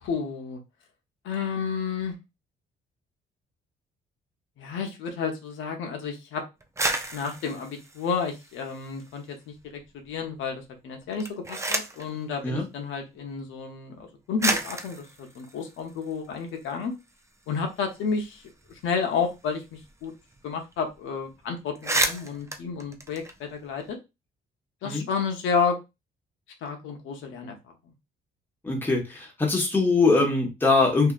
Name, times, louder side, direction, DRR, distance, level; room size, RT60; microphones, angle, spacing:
voice 1, 0.0-0.6 1.2-2.1 4.6-6.4 7.1-16.9 17.5-18.4 18.7-20.1 20.4-24.0 24.8-25.8 26.6-27.6, left 5 dB, 85° left, 3 dB, 0.7 m, -31 dB
sound 1, 6.6-9.2 9.5-10.2 11.0-12.1 13.1-13.2 14.0-14.1 14.4-16.7 17.1-17.2 17.4-20.0 20.3-20.4 20.7-21.0 21.3-21.4 21.7-23.9, right 2 dB, 15° right, 0.5 m, -32 dB
voice 2, 28.6-31.1, left 3 dB, 10° left, -1 dB, 1.1 m, -22 dB
2.7 x 2.5 x 2.3 m, 0.24 s
cardioid pair, 90°, 20 cm